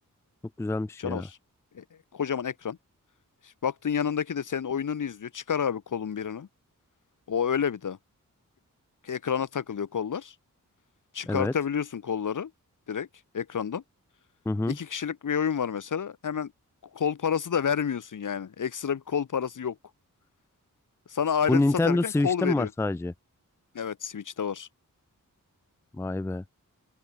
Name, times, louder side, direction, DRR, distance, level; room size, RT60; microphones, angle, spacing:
voice 1, 0.6-1.3 11.3-11.5 14.5-14.8 21.5-23.1 25.9-26.4, left 2 dB, 10° left, 0.4 m, -26 dB
voice 2, 2.1-2.8 3.6-6.5 7.3-8.0 9.0-10.3 11.1-12.5 12.9-13.1 13.3-13.8 14.7-16.5 16.9-19.8 21.1-22.7 23.7-24.7, left 7 dB, 70° left, 1.2 m, -29 dB
open air
wide cardioid pair, 140°, 33 cm